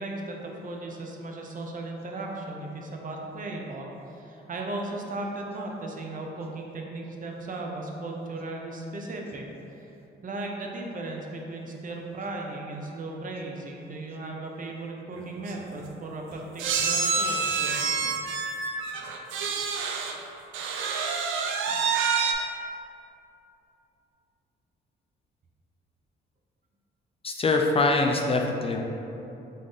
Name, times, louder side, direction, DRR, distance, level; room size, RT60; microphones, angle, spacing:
voice 1, 0.0-9.4 9.8-9.9 10.2-17.8, right 2 dB, 40° right, 0 dB, 0.7 m, -36 dB
sound 1, 15.2-15.3 15.5-15.7 16.6-20.2 20.5-22.3, right 5 dB, 80° right, 0.5 m, -27 dB
voice 2, 27.2-28.8, left 3 dB, 30° left, 2 dB, 0.4 m, -23 dB
3.8 x 3.7 x 3.9 m, 2.9 s
cardioid pair, 90°, 20 cm